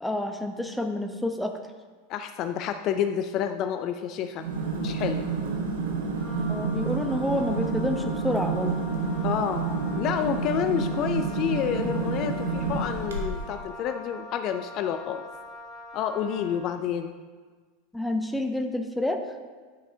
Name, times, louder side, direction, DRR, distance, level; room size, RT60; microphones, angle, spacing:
voice 1, 0.0-1.5 6.5-8.8 17.9-19.2, left 1 dB, 5° left, 5 dB, 0.7 m, -28 dB
voice 2, 2.1-4.4 4.8-5.2 9.2-15.2 15.9-17.1, left 9 dB, 45° left, 8 dB, 0.3 m, -29 dB
sound 1, 4.4-13.6, right 4 dB, 75° right, 1.1 m, -29 dB
Wind instrument woodwind instrument, 6.1-16.7, left 1 dB, 15° right, 2.0 m, -43 dB
9.7 x 5.3 x 2.7 m, 1.5 s
hypercardioid pair, 90°, 0 cm